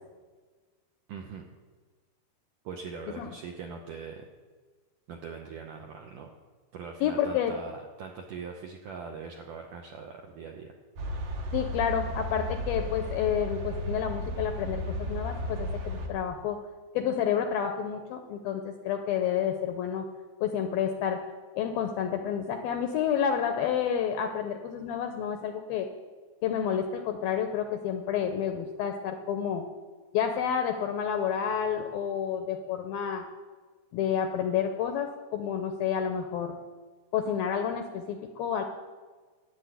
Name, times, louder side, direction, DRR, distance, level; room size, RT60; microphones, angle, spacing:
voice 1, 1.1-1.5 2.6-4.2 5.1-6.3 6.7-10.7, right 5 dB, 80° right, 2 dB, 1.9 m, -41 dB
voice 2, 7.0-7.6 11.5-16.6 16.9-20.1 20.4-21.2 21.6-25.9 26.4-29.7 30.1-33.2 33.9-36.6 37.1-38.6, left 8 dB, 80° left, 5 dB, 2.2 m, -29 dB
sound 1, 11.0-16.1, equal, 60° right, 2.8 m, -34 dB
12.5 x 7.9 x 9.3 m, 1.4 s
omnidirectional pair, 5.0 m